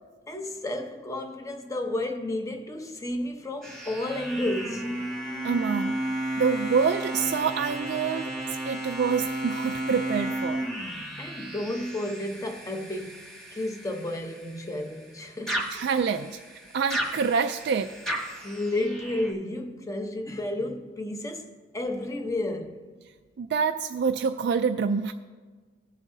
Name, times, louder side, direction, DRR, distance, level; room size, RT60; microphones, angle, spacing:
voice 1, 0.3-5.0 11.2-15.7 18.4-22.8, left 1 dB, 20° left, 0.8 m, -32 dB
sound 1, 3.6-15.1 15.5-19.3, right 1 dB, 5° left, 1.4 m, -33 dB
voice 2, 5.4-6.0 6.4-8.3 8.6-10.7 15.7-16.4 16.7-17.9 23.4-25.1, right 6 dB, 65° right, 0.3 m, -26 dB
17.5 x 7.3 x 2.7 m
head